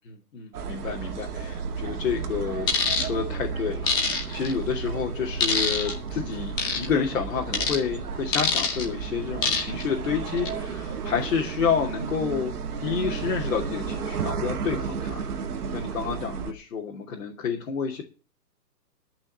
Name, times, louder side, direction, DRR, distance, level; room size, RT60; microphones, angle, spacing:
voice 1, 0.0-2.7 3.0-12.5 12.8-15.3 15.7-18.0, left 6 dB, 55° left, -1 dB, 3.0 m, -29 dB
sound 1, 0.5-16.5, right 6 dB, 65° right, 1.9 m, -33 dB
sound 2, 2.7-3.1 3.9-4.5 5.4-5.9 6.6-6.8 7.5-7.8 8.3-8.8 9.4-9.8 10.3-10.5, left 5 dB, 10° left, 1.1 m, -24 dB
13.5 x 6.0 x 8.6 m, 0.36 s
hypercardioid pair, 170°, 49 cm